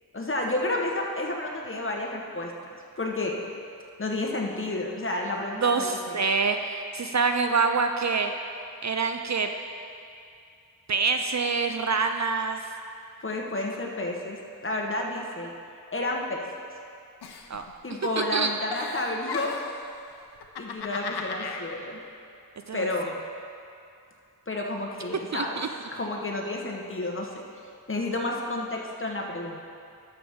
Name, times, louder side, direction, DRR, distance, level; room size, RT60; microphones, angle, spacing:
voice 1, 0.1-3.3 4.0-6.2 13.2-15.5 15.9-16.4 17.8-19.6 20.6-22.0 22.7-23.1 24.5-25.6 25.9-27.3 27.9-29.6, left 2 dB, 30° left, 0 dB, 1.2 m, -31 dB
voice 2, 5.6-8.3 8.8-9.5 10.9-12.6 17.5-17.6 18.2-18.5 22.7-22.9 25.3-25.7, right 4 dB, 45° right, 6 dB, 0.5 m, -26 dB
Giggle, 17.2-18.1 18.3-19.8 20.4-21.6, left 5 dB, 90° left, 0.7 m, -36 dB
12.0 x 6.8 x 3.6 m, 2.5 s
wide cardioid pair, 65°, 38 cm